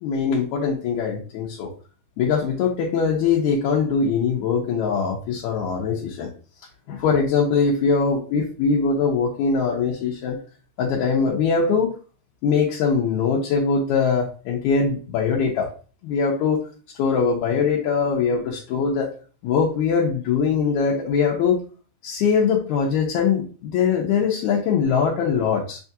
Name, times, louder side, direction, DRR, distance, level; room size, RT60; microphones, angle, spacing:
voice 1, 0.0-1.7 2.2-6.3 6.9-10.4 10.8-11.9 12.4-15.7 16.0-16.6 17.0-19.1 19.4-21.6 22.0-25.8, left 5 dB, 75° left, -4 dB, 2.1 m, -22 dB
6.5 x 2.4 x 2.7 m, 0.38 s
omnidirectional pair, 3.4 m